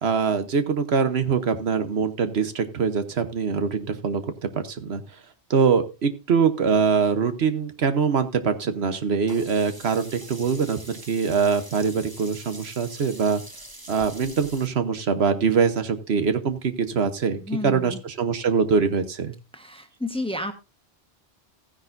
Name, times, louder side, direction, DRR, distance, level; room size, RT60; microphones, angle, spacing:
voice 1, 0.0-5.0 5.5-13.4 13.9-19.3, right 5 dB, 70° right, 9 dB, 1.3 m, -23 dB
Sink (filling or washing), 9.3-14.7, right 1 dB, 20° right, 1.6 m, -44 dB
voice 2, 17.4-18.0 19.5-20.5, left 2 dB, 5° left, 7 dB, 1.2 m, -31 dB
15.0 x 10.0 x 2.6 m, 0.28 s
omnidirectional pair, 1.1 m